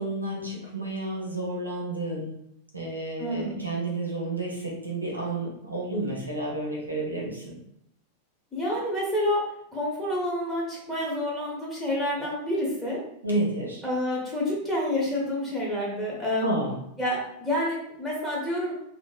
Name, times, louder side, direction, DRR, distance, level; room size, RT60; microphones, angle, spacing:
voice 1, 0.0-2.3 2.7-7.5 13.2-13.8 16.4-16.7, right 2 dB, 85° right, -3 dB, 0.6 m, -30 dB
voice 2, 3.2-3.6 8.5-13.0 13.8-16.5 17.0-18.7, left 1 dB, 5° left, -5 dB, 1.0 m, -28 dB
2.8 x 2.0 x 2.3 m, 0.74 s
figure-of-eight pair, 90°, 0 cm